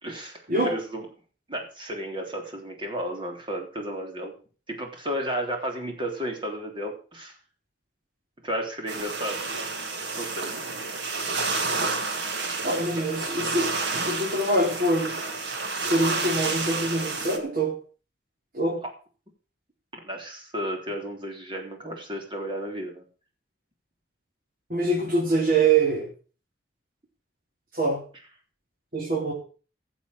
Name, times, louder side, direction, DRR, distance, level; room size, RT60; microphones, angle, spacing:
voice 1, 0.0-1.1 1.5-4.3 4.7-7.3 8.4-9.4 10.1-10.5 13.0-13.1 19.9-23.0, equal, 30° right, 2 dB, 3.4 m, -33 dB
sound 1, 8.9-17.4, right 3 dB, 70° right, 2.0 m, -30 dB
voice 2, 12.6-13.6 13.9-15.2 15.8-17.8 18.5-18.8 24.7-26.1 27.7-28.0 28.9-29.3, right 2 dB, 55° right, -4 dB, 4.2 m, -24 dB
15.0 x 7.1 x 6.3 m, 0.38 s
head